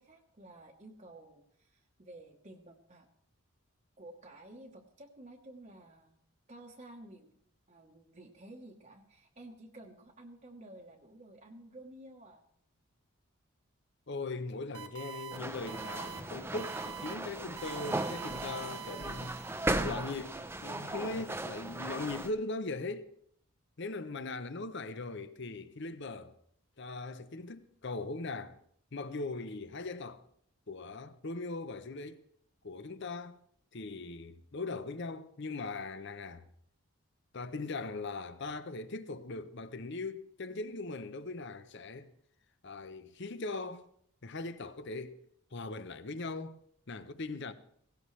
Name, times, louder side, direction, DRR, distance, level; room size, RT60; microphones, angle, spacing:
voice 1, 0.0-3.1 4.0-6.2 6.5-7.4 7.7-12.5, right 1 dB, 30° right, 1.1 m, -52 dB
voice 2, 14.1-19.4 19.7-20.4 20.6-23.1 23.8-26.3 26.8-28.6 28.9-30.2 30.7-32.2 32.6-33.4 33.7-36.4 37.3-42.1 42.6-43.8 44.2-45.2 45.5-46.6 46.9-47.5, left 3 dB, 50° left, 0.8 m, -40 dB
sound 1, 14.7-15.4 15.7-16.2 16.6-17.1 17.6-19.9, right 11 dB, 80° right, 1.3 m, -45 dB
sound 2, 15.3-22.3, right 1 dB, 10° right, 0.6 m, -37 dB
17.0 x 16.5 x 3.2 m
head